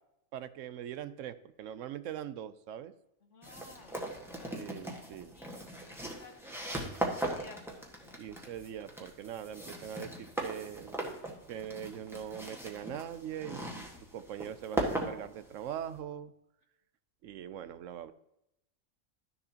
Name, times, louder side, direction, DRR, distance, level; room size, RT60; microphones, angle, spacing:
voice 1, 0.3-2.9 4.5-5.4 8.2-11.0 11.5-13.9 14.1-16.3 17.2-18.1, right 9 dB, 80° right, 13 dB, 1.0 m, -42 dB
voice 2, 3.3-4.0 4.3-4.5 5.3-7.6 8.0-8.5, left 4 dB, 70° left, 5 dB, 1.5 m, -56 dB
sound 1, 3.4-16.0, right 1 dB, ahead, 1.4 m, -39 dB
12.0 x 6.9 x 2.8 m, 0.84 s
omnidirectional pair, 1.3 m